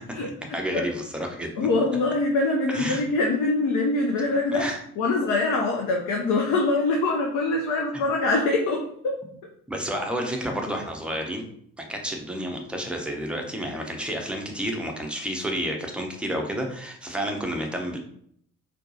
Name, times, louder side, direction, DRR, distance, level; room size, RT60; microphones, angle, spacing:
voice 1, 0.5-1.5 2.7-3.0 4.5-4.8 9.7-11.4 11.9-18.0, equal, ahead, 1 dB, 0.7 m, -30 dB
voice 2, 1.6-4.6 5.0-9.2, left 2 dB, 45° left, 0 dB, 0.7 m, -24 dB
4.4 x 2.2 x 2.7 m, 0.67 s
figure-of-eight pair, 55°, 42 cm